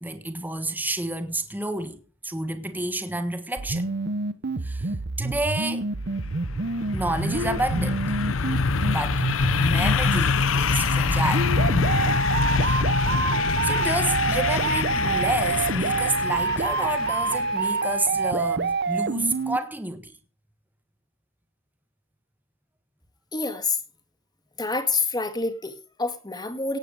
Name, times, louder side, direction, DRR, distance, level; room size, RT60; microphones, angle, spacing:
voice 1, 0.0-3.9 4.6-5.9 6.9-8.0 8.9-11.5 12.6-12.9 13.6-20.1, right 2 dB, 10° right, 1.5 m, -30 dB
sound 1, 3.6-19.6, right 3 dB, 55° right, 0.9 m, -27 dB
sound 2, 6.1-17.8, left 5 dB, 90° left, 0.7 m, -25 dB
voice 2, 23.3-23.8 24.6-26.8, left 4 dB, 20° left, 2.0 m, -27 dB
17.5 x 8.4 x 5.1 m
head